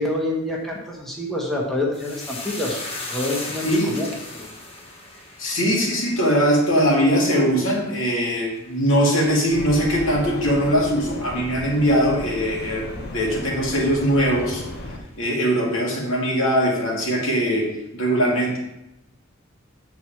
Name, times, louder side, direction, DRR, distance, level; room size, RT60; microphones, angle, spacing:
voice 1, 0.0-4.1 4.4-4.5, left 1 dB, ahead, -4 dB, 1.3 m, -27 dB
sound 1, 1.9-10.5 10.8-11.5 11.8-12.0, left 2 dB, 30° left, 1.3 m, -38 dB
voice 2, 5.4-12.9 13.1-14.6 15.2-17.7 17.9-18.6, equal, 70° left, -3 dB, 2.4 m, -21 dB
sound 2, 9.5-15.0, left 1 dB, 50° left, 1.1 m, -34 dB
7.4 x 4.7 x 5.8 m, 0.87 s
head